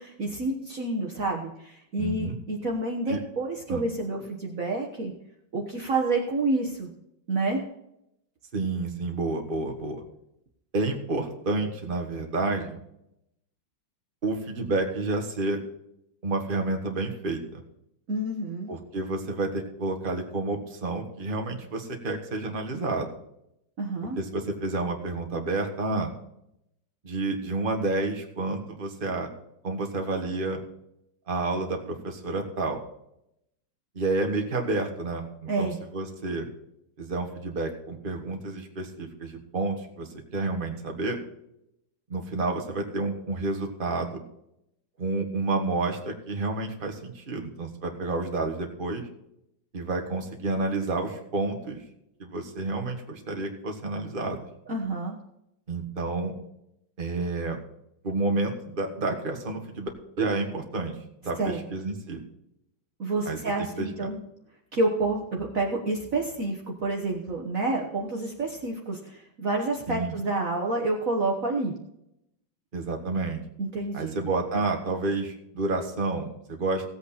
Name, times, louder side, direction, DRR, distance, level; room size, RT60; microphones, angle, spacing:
voice 1, 0.0-5.1 5.5-6.9 7.3-7.6 18.1-18.7 23.8-24.2 35.5-35.8 54.7-55.2 61.4-61.6 63.0-64.2 64.7-71.7 73.6-74.2, right 2 dB, 45° right, 0 dB, 1.6 m, -28 dB
voice 2, 2.0-2.3 3.1-3.2 3.7-3.8 8.5-10.0 10.7-12.8 14.2-15.6 16.2-17.6 18.7-23.1 24.2-26.1 27.0-29.3 29.6-30.6 31.3-32.8 33.9-36.5 37.0-41.2 42.1-44.2 45.0-49.1 49.7-51.8 52.2-54.5 55.7-56.3 57.0-57.6 58.0-59.9 60.2-61.0 61.2-62.2 63.2-64.1 69.9-70.2 72.7-73.4 73.9-76.9, right 2 dB, 30° right, 3 dB, 1.7 m, -30 dB
16.5 x 8.2 x 4.2 m, 0.80 s
omnidirectional pair, 2.1 m